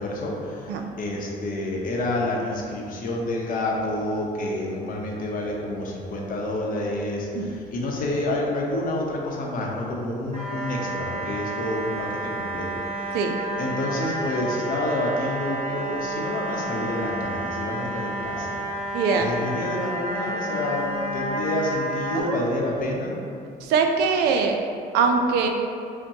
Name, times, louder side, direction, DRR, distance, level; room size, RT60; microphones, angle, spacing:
voice 1, 0.0-12.7 13.0-13.2 13.6-18.6 19.1-20.9 21.1-23.1, left 1 dB, 55° left, -1 dB, 0.7 m, -28 dB
sound 1, 10.3-22.2, right 1 dB, 40° right, 1.2 m, -30 dB
voice 2, 18.9-19.3 22.1-22.8 23.6-24.6 24.9-25.5, right 5 dB, 80° right, 4 dB, 0.4 m, -23 dB
5.5 x 2.2 x 2.7 m, 2.5 s
cardioid pair, 110°, 17 cm